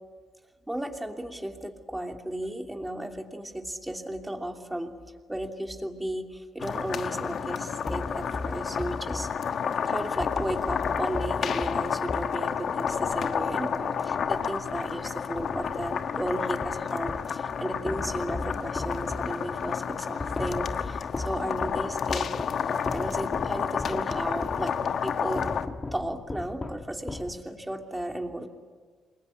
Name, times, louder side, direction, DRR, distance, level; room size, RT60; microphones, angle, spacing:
voice 1, 0.7-4.9 5.3-9.3 9.8-22.3 22.6-24.8 25.0-25.5 25.9-28.5, right 1 dB, 10° right, 3 dB, 2.9 m, -34 dB
sound 1, 6.6-25.7, left 7 dB, 60° left, 1.1 m, -30 dB
sound 2, 7.9-15.0 15.4-17.4 17.9-27.8, left 2 dB, 20° left, 1.3 m, -38 dB
28.0 x 21.5 x 9.8 m, 1.5 s
cardioid pair, 90°, 0 cm